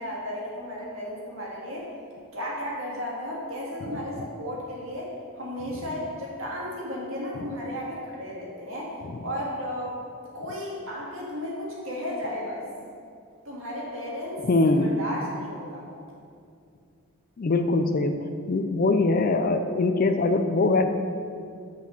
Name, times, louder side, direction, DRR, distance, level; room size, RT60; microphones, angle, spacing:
voice 1, 0.0-1.9 2.3-8.9 9.2-10.0 10.3-12.6 13.4-16.0, equal, 65° right, -4 dB, 2.0 m, -34 dB
voice 2, 14.4-15.0 17.4-20.9, left 2 dB, 40° left, 8 dB, 0.4 m, -23 dB
6.3 x 6.0 x 5.6 m, 2.4 s
head